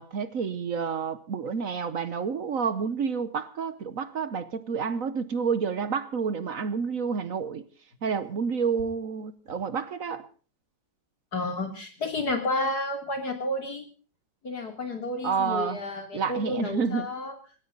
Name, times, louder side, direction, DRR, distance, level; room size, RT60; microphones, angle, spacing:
voice 1, 0.0-7.6 8.0-10.2 15.2-15.8 16.1-17.1, right 6 dB, 55° right, 15 dB, 1.3 m, -29 dB
voice 2, 11.3-13.9 14.4-17.3, left 2 dB, 65° left, 6 dB, 3.7 m, -31 dB
20.0 x 17.0 x 4.0 m, 0.39 s
omnidirectional pair, 1.8 m